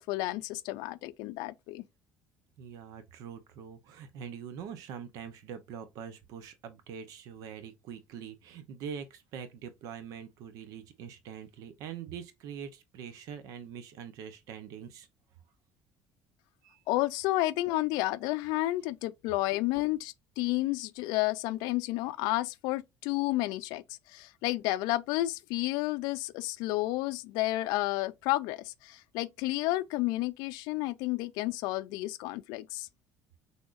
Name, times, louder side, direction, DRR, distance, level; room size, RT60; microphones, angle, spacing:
voice 1, 0.0-1.8 16.9-32.9, left 18 dB, 85° left, 0.4 m, -31 dB
voice 2, 2.6-15.1 16.6-16.8, right 7 dB, 60° right, 0.8 m, -44 dB
6.2 x 3.4 x 2.5 m
cardioid pair, 170°, 7 cm